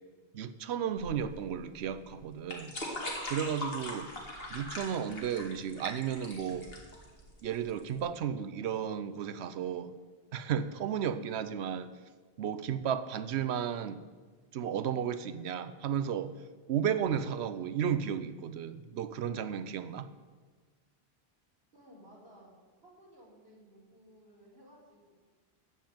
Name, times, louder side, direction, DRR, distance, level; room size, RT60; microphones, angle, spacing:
voice 1, 0.3-2.8 3.3-4.1 4.5-6.7 7.4-9.9 10.3-11.9 12.4-14.0 14.5-16.3 16.7-20.1, right 8 dB, 85° right, 12 dB, 0.9 m, -33 dB
sound 1, 1.0-8.0, left 1 dB, 65° left, 2.4 m, -41 dB
voice 2, 21.7-22.5 22.8-25.1, equal, 70° right, -5 dB, 4.1 m, -57 dB
14.0 x 5.6 x 9.0 m, 1.4 s
omnidirectional pair, 1.1 m